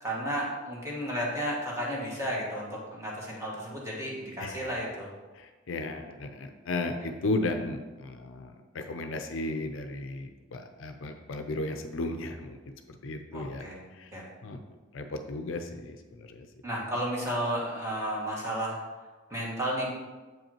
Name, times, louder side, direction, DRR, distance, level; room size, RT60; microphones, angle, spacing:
voice 1, 0.0-5.1 7.0-7.1 13.3-13.8 14.1-14.2 16.6-18.8 19.3-19.9, equal, 15° right, -4 dB, 1.5 m, -33 dB
voice 2, 4.4-4.7 5.4-12.6 13.0-13.7 14.0-14.1 14.4-14.6 14.9-16.5, left 2 dB, 70° left, 6 dB, 0.5 m, -35 dB
7.5 x 5.4 x 2.9 m, 1.3 s
head